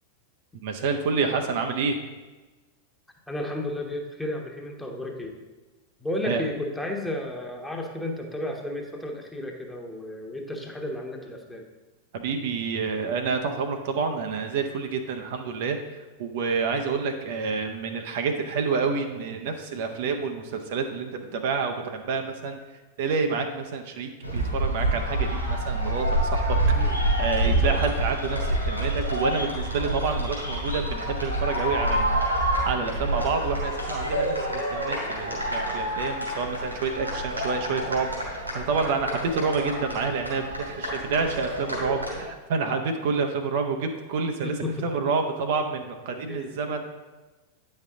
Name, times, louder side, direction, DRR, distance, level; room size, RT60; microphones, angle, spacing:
voice 1, 0.6-2.0 6.2-6.4 12.1-22.6 23.0-26.6 26.8-32.2 32.7-44.6 44.8-46.8, right 4 dB, 50° right, 5 dB, 0.7 m, -28 dB
voice 2, 3.3-5.4 6.0-11.7 26.7-27.0 27.5-27.9 44.4-44.9 46.1-46.8, left 1 dB, 5° left, 1 dB, 1.1 m, -33 dB
sound 1, 24.2-42.3, right 1 dB, 90° right, 2.5 m, -27 dB
9.1 x 5.3 x 3.7 m, 1.2 s
figure-of-eight pair, 90°, 0 cm